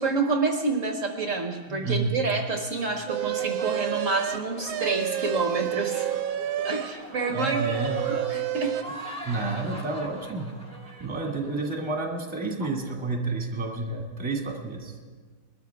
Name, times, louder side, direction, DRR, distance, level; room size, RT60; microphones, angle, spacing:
voice 1, 0.0-6.1 6.6-8.7, right 3 dB, 45° right, 3 dB, 1.2 m, -28 dB
voice 2, 1.7-2.2 7.3-8.0 9.2-10.5 11.0-15.0, right 3 dB, 15° right, 0 dB, 1.9 m, -30 dB
sound 1, 3.1-11.8, right 1 dB, 5° left, 1.7 m, -43 dB
sound 2, 3.1-6.9 7.3-8.8, right 11 dB, 80° right, 1.3 m, -29 dB
21.5 x 13.0 x 3.6 m, 1.5 s
omnidirectional pair, 2.2 m